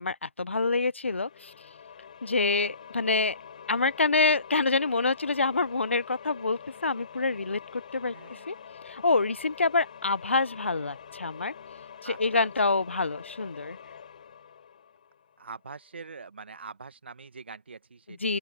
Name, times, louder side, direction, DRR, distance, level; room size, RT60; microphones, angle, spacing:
voice 1, 0.0-1.5 2.2-3.4 3.7-8.6 8.9-11.5 12.0-13.8 18.2-18.4, left 3 dB, 90° left, 0.7 m, -27 dB
sound 1, 1.1-15.7, left 7 dB, 40° left, 3.8 m, -46 dB
voice 2, 8.1-8.5 12.0-12.5 15.4-18.4, right 4 dB, 65° right, 1.5 m, -44 dB
open air
figure-of-eight pair, 160°, 6 cm